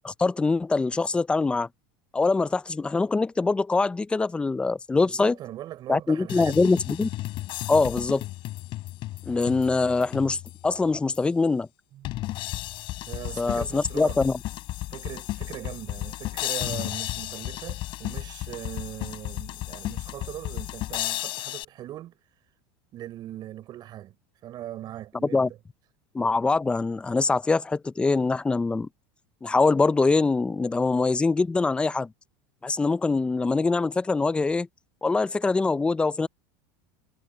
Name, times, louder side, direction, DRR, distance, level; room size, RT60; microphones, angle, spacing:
voice 1, 0.0-1.7 2.1-5.4 5.9-7.1 7.7-8.2 9.3-11.7 13.4-14.4 25.3-25.5 26.1-28.9 29.4-32.1 32.6-34.7 35.0-36.3, left 3 dB, 10° left, 0.4 m, -23 dB
voice 2, 4.9-6.7 11.9-12.1 13.1-14.2 14.9-22.1 22.9-24.2 24.4-25.6, right 13 dB, 35° right, 4.3 m, -40 dB
sound 1, 6.3-10.7 11.2-11.3 12.1-21.7, left 17 dB, 45° left, 5.5 m, -34 dB
supercardioid pair, 150°, 12 cm